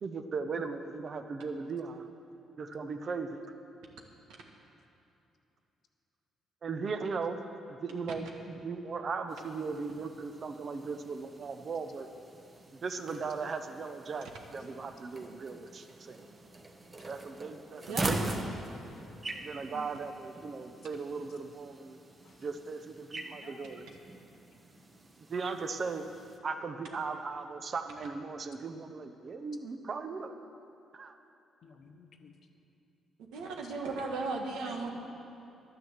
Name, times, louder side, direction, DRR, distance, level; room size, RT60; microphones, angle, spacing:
voice 1, 0.0-2.1 2.6-3.4 6.6-7.4 7.8-12.1 12.8-16.2 17.1-18.4 19.4-22.0 22.4-23.8 25.2-26.0 26.4-30.3 30.9-31.1, right 4 dB, 45° right, 8 dB, 0.9 m, -37 dB
sound 1, 9.3-26.4, right 2 dB, 30° right, 1.1 m, -43 dB
voice 2, 19.0-19.4 19.7-19.8 22.2-22.3 23.4-23.9 31.6-32.3 33.6-33.7 34.6-34.8, left 6 dB, 60° left, 6 dB, 1.0 m, -53 dB
voice 3, 33.3-34.9, right 3 dB, 90° right, 1 dB, 1.5 m, -35 dB
11.0 x 9.6 x 7.3 m, 2.7 s
cardioid pair, 90°, 0 cm